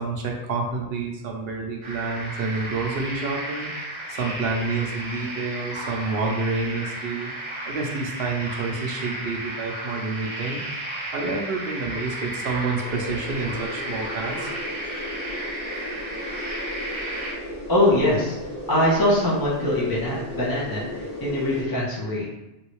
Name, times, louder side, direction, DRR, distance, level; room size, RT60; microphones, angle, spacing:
voice 1, 0.0-3.7 4.1-7.3 7.7-10.6 11.1-14.5, right 3 dB, 75° right, 1 dB, 0.8 m, -28 dB
sound 1, 1.8-17.3, right 1 dB, 30° right, 0.8 m, -34 dB
sound 2, 12.8-21.6, left 1 dB, 75° left, 1.1 m, -35 dB
voice 2, 17.7-18.4 18.7-20.8 21.2-22.2, left 1 dB, 25° left, -6 dB, 0.6 m, -22 dB
3.0 x 2.7 x 3.0 m, 0.96 s
omnidirectional pair, 1.0 m